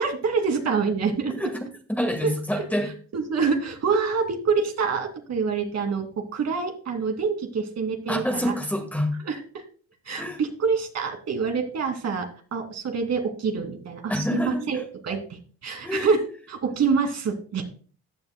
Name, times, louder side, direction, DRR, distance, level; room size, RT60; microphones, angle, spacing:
voice 1, 0.0-1.5 2.2-2.3 2.6-2.7 3.1-8.6 9.3-9.6 10.0-16.2 16.5-17.6, right 5 dB, 60° right, 2.7 m, -26 dB
voice 2, 1.9-3.0 8.1-9.2 10.2-10.4 14.1-14.9 15.8-16.1, equal, 5° left, 1.9 m, -27 dB
14.5 x 9.0 x 2.2 m
cardioid pair, 90°, 30 cm